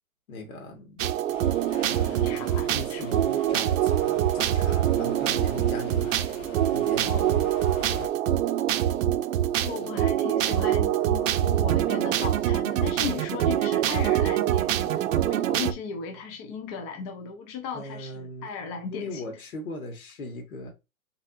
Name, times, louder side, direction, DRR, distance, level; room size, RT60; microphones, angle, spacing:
voice 1, 0.3-1.0 1.9-6.2 6.7-7.2 7.9-8.1 17.7-18.5 18.9-20.7, left 1 dB, 75° left, 2.1 m, -39 dB
sound 1, 1.0-15.7, right 11 dB, 65° right, 0.6 m, -25 dB
Subway metro underground, 1.3-8.1, left 6 dB, 60° left, 1.1 m, -44 dB
voice 2, 2.2-3.2 7.1-7.5 9.6-19.4, left 6 dB, 25° left, 0.6 m, -36 dB
4.2 x 4.1 x 2.5 m
hypercardioid pair, 140°, 43 cm